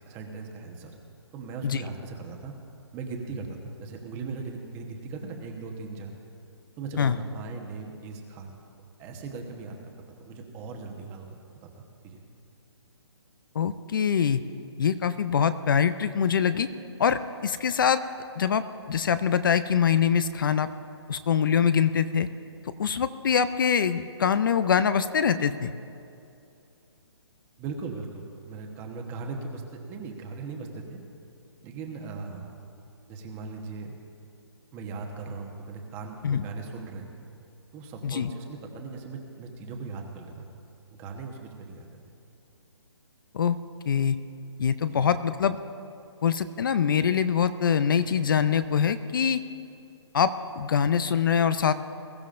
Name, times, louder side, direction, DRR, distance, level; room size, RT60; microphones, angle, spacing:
voice 1, 0.1-1.0 1.3-2.5 2.9-6.1 6.8-8.5 9.0-9.8 10.2-11.3 11.8-12.2 27.6-31.0 31.6-32.6 33.1-33.9 34.7-37.1 37.7-40.4 40.9-41.9 44.9-45.1, right 4 dB, 15° right, 2 dB, 1.1 m, -38 dB
voice 2, 13.5-14.4 14.8-16.7 17.0-18.0 18.4-20.7 21.1-22.3 22.8-25.7 36.2-36.4 38.0-38.3 43.3-43.6 43.9-44.2 44.6-45.6 46.2-49.4 50.1-51.7, left 7 dB, 50° left, 12 dB, 0.5 m, -24 dB
21.5 x 13.0 x 2.5 m, 2.6 s
hypercardioid pair, 160°, 14 cm